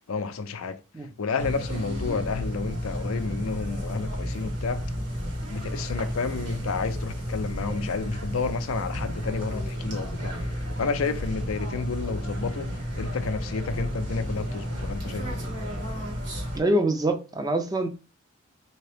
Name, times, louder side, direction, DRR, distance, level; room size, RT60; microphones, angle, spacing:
voice 1, 0.1-0.8 1.2-4.8 5.5-15.4, left 4 dB, 90° left, 0.5 m, -31 dB
sound 1, 1.4-16.6, equal, 55° right, 1.5 m, -32 dB
voice 2, 16.5-17.9, right 1 dB, 20° right, 0.4 m, -24 dB
3.8 x 2.8 x 3.3 m
head